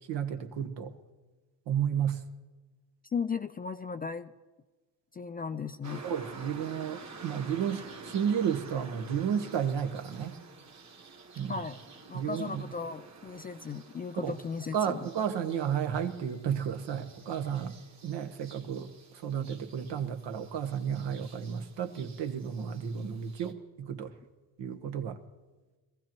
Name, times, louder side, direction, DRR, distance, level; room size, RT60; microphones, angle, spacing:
voice 1, 0.1-0.9 1.7-2.2 6.0-10.4 11.4-11.6 12.1-12.6 14.2-14.3 14.7-17.8 18.0-24.1 24.6-25.2, right 8 dB, 70° right, 7 dB, 1.2 m, -32 dB
voice 2, 3.0-4.3 5.1-6.1 11.5-11.8 12.1-15.1, left 5 dB, 20° left, 9 dB, 0.3 m, -36 dB
sound 1, 5.8-23.5, right 4 dB, 35° right, 1.7 m, -50 dB
22.0 x 15.0 x 3.0 m, 1.2 s
supercardioid pair, 75°, 44 cm